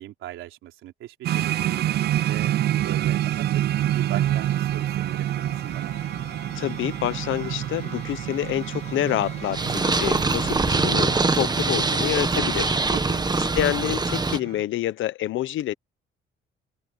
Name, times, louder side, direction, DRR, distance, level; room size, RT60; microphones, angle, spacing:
voice 1, 0.0-1.7 2.3-3.4 3.8-6.0 12.9-13.3, right 14 dB, 90° right, 3.7 m, -38 dB
sound 1, 1.2-14.6, right 12 dB, 55° right, 0.4 m, -28 dB
sound 2, 3.8-13.4, left 5 dB, 35° left, 2.8 m, -46 dB
voice 2, 6.5-12.8 13.5-15.7, left 13 dB, 80° left, 1.0 m, -27 dB
Purr, 9.5-14.4, right 3 dB, 20° right, 1.4 m, -23 dB
open air
cardioid pair, 90°, 20 cm